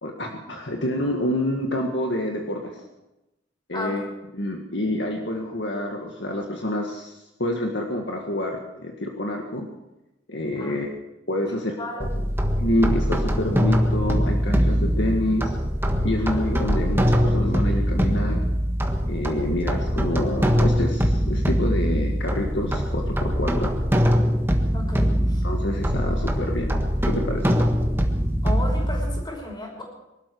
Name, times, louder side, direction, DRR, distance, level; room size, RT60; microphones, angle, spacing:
voice 1, 0.0-2.7 3.7-4.0 4.3-7.1 7.4-9.7 10.3-10.9 11.3-12.1 12.6-15.5 16.0-18.4 19.1-23.7 25.4-27.6, left 1 dB, 65° left, 1 dB, 1.9 m, -27 dB
voice 2, 3.7-4.1 10.5-10.7 11.5-12.1 16.2-16.4 24.7-25.4 28.4-29.8, left 1 dB, 25° left, 0 dB, 5.5 m, -34 dB
sound 1, 12.0-29.2, equal, 10° right, 1.5 m, -22 dB
23.5 x 12.5 x 4.8 m, 0.94 s
head